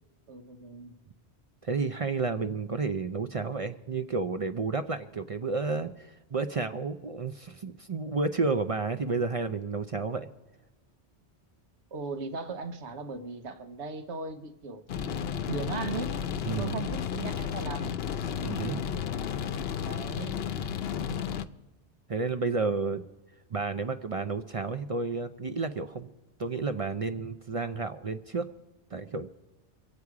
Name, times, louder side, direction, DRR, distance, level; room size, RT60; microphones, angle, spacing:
voice 1, 0.3-1.0 11.9-15.1 15.5-16.2 16.6-18.0 19.8-20.4, right 4 dB, 85° right, 9 dB, 1.2 m, -38 dB
voice 2, 1.6-10.3 16.4-16.8 18.4-18.9 22.1-23.0 23.5-26.1 26.4-28.5 28.9-29.3, right 4 dB, 45° right, 9 dB, 0.5 m, -31 dB
sound 1, 14.9-21.4, left 8 dB, 70° left, 0.8 m, -33 dB
25.0 x 8.3 x 4.8 m, 1.2 s
omnidirectional pair, 1.1 m